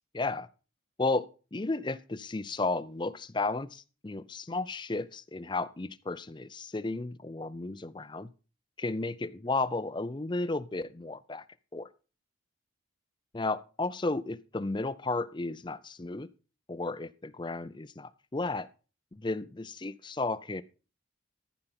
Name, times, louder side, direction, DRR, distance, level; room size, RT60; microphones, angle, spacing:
voice 1, 0.1-0.5 1.0-8.3 8.8-11.4 11.7-11.9 13.3-16.3 16.7-18.7 19.1-20.6, left 3 dB, 20° left, 12 dB, 0.5 m, -33 dB
14.0 x 5.1 x 5.8 m, 0.34 s
head